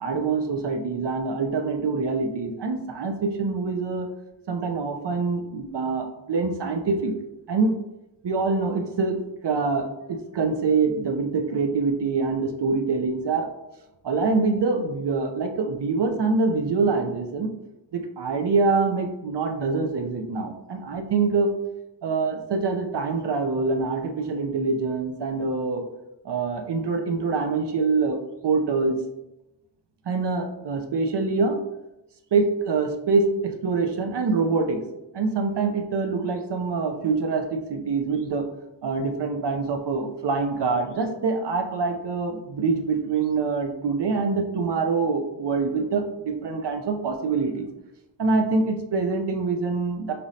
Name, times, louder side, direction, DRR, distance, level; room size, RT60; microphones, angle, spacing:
voice 1, 0.0-4.1 4.5-7.1 7.5-7.7 8.2-13.5 14.0-17.5 17.9-21.5 22.0-25.8 26.2-28.2 28.4-28.9 30.1-31.6 32.3-34.8 35.1-38.5 38.8-47.7 48.2-50.1, right 4 dB, 60° right, 5 dB, 0.6 m, -25 dB
5.5 x 3.1 x 2.7 m, 0.94 s
wide cardioid pair, 120°, 46 cm